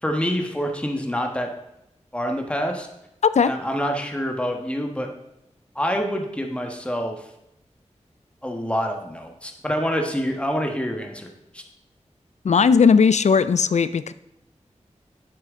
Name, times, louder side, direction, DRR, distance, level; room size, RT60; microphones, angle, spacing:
voice 1, 0.0-1.5 2.1-2.9 3.4-5.1 5.7-7.3 8.4-11.3 11.5-11.6, equal, 10° left, 3 dB, 1.3 m, -26 dB
voice 2, 12.4-14.1, left 5 dB, 70° left, 15 dB, 0.4 m, -17 dB
8.8 x 7.6 x 3.7 m, 0.84 s
wide cardioid pair, 55°, 12 cm